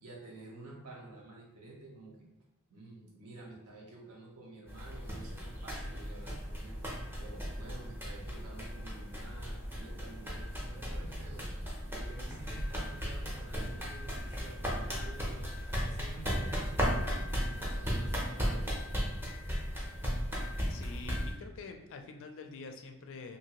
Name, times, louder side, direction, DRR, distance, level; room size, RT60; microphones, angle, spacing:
voice 1, 0.0-2.3 2.7-6.8 7.2-11.5 11.9-15.5 15.8-18.8, right 2 dB, 75° right, -2 dB, 0.8 m, -50 dB
sound 1, 4.7-21.3, equal, 10° right, 0.6 m, -36 dB
voice 2, 20.7-23.4, left 4 dB, 60° left, 5 dB, 0.4 m, -46 dB
2.7 x 2.7 x 2.9 m, 0.96 s
head